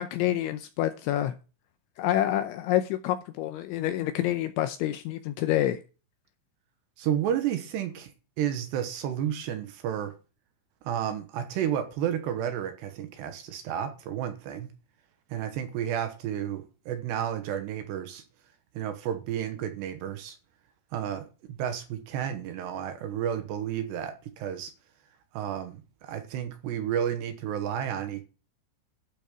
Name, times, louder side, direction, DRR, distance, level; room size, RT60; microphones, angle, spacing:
voice 1, 0.0-1.4 2.0-5.8, left 13 dB, 80° left, 2.8 m, -27 dB
voice 2, 7.0-8.1 8.4-10.1 10.8-14.7 15.3-18.2 18.7-20.4 20.9-21.2 21.6-24.7 25.3-28.2, right 9 dB, 70° right, 2.9 m, -31 dB
12.0 x 6.9 x 6.2 m
omnidirectional pair, 5.9 m